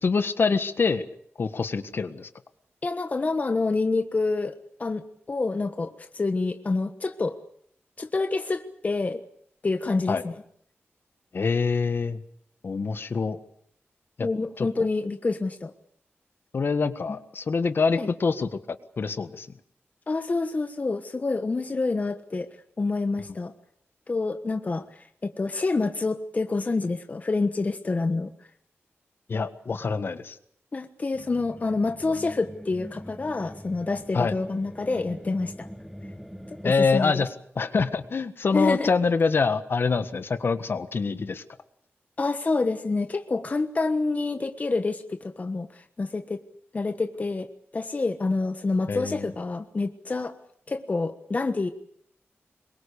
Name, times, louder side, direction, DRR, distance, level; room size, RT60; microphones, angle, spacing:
voice 1, 0.0-1.0 1.4-2.3 10.1-10.2 11.3-12.2 12.6-13.4 14.2-14.3 14.6-14.7 16.5-19.5 29.3-30.4 34.1-34.3 36.6-37.3 37.5-41.4 48.9-49.3, left 4 dB, 55° left, 11 dB, 1.6 m, -25 dB
voice 2, 2.8-7.3 8.0-9.2 9.6-10.4 14.2-15.7 18.0-18.1 20.1-23.5 24.1-28.3 30.7-35.7 36.5-37.3 38.5-38.9 42.2-46.4 46.7-50.4 50.7-51.7, left 3 dB, 35° left, 8 dB, 1.3 m, -27 dB
sound 1, 31.1-36.7, equal, ahead, 1.3 m, -42 dB
25.5 x 23.0 x 7.1 m, 0.66 s
wide cardioid pair, 140°, 4 cm